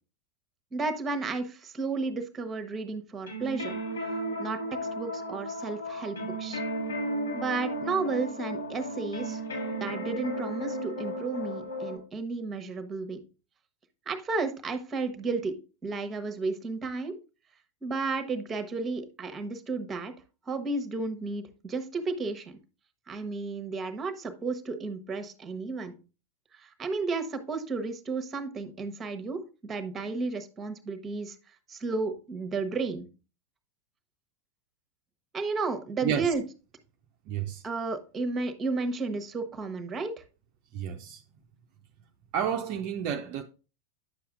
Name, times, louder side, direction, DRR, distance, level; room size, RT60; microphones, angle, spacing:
voice 1, 0.7-3.8 4.4-6.6 7.3-9.4 9.8-13.2 14.1-17.2 17.8-20.1 20.5-22.6 23.1-25.9 26.5-31.3 31.7-33.1 35.3-36.4 37.6-40.2, right 3 dB, 20° right, 1.1 m, -33 dB
sound 1, 3.3-12.0, equal, 70° left, 2.6 m, -34 dB
voice 2, 37.3-37.6 40.7-41.2 42.3-43.4, right 8 dB, 45° right, 0.5 m, -30 dB
9.6 x 6.9 x 2.5 m
figure-of-eight pair, 90°, 0 cm